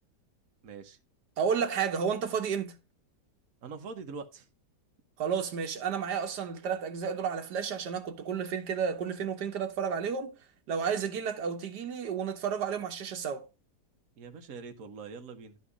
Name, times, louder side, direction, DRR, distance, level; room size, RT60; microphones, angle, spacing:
voice 1, 0.6-1.0 3.6-4.5 14.2-15.6, right 5 dB, 55° right, 1.4 m, -43 dB
voice 2, 1.4-2.7 5.2-10.3 10.7-13.4, right 7 dB, 75° right, 1.6 m, -31 dB
11.5 x 4.2 x 4.9 m
omnidirectional pair, 1.8 m